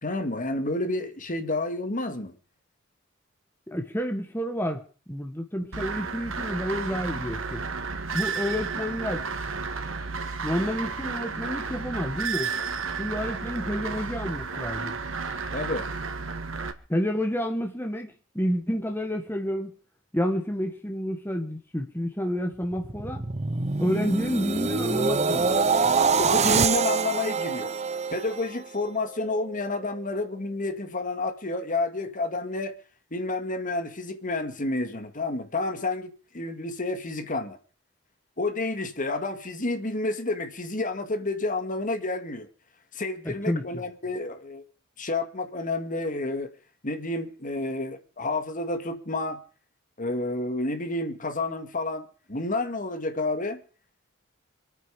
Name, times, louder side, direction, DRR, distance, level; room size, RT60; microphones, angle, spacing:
voice 1, 0.0-2.3 15.5-15.9 26.2-27.7 28.1-32.8 33.1-37.6 38.4-42.5 42.9-44.6 45.0-46.5 46.8-49.4 50.0-53.6, left 2 dB, 40° left, 2.0 m, -30 dB
voice 2, 3.7-4.8 5.1-7.6 8.1-9.2 10.4-12.5 13.0-14.9 16.9-19.7 20.1-23.2 23.8-25.5 43.2-43.6, equal, 10° left, 1.5 m, -29 dB
sound 1, 5.7-16.7, right 5 dB, 85° right, 2.0 m, -32 dB
sound 2, 22.6-28.9 29.3-29.6, right 5 dB, 35° right, 0.9 m, -25 dB
26.0 x 9.4 x 5.0 m
head